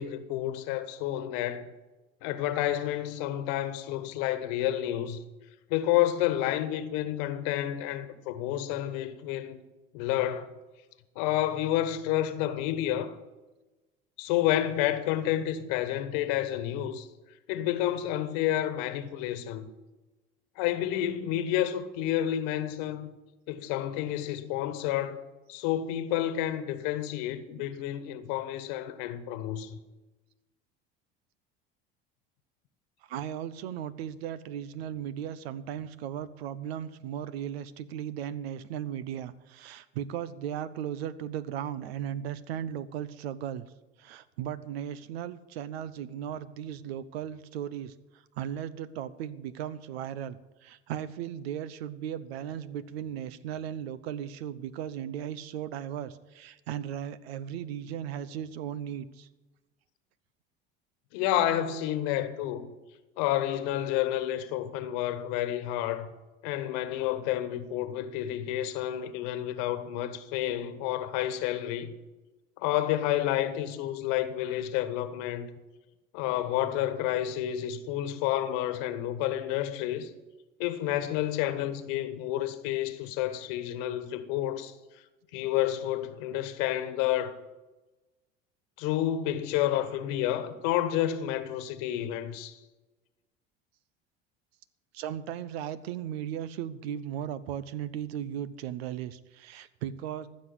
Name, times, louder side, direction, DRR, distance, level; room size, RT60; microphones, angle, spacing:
voice 1, 0.0-1.7 2.2-5.2 5.7-9.6 9.9-10.5 11.1-13.2 14.2-17.1 17.5-19.7 20.6-23.1 23.5-25.2 25.5-29.8 61.1-62.7 63.2-66.1 66.4-71.9 72.6-75.5 76.1-80.1 80.6-84.7 85.3-87.3 88.8-92.6, left 12 dB, 70° left, 1.3 m, -30 dB
voice 2, 33.1-43.7 44.0-47.9 48.4-59.3 94.9-100.3, right 10 dB, 80° right, 0.8 m, -36 dB
15.0 x 6.4 x 9.5 m
hypercardioid pair, 75°, 31 cm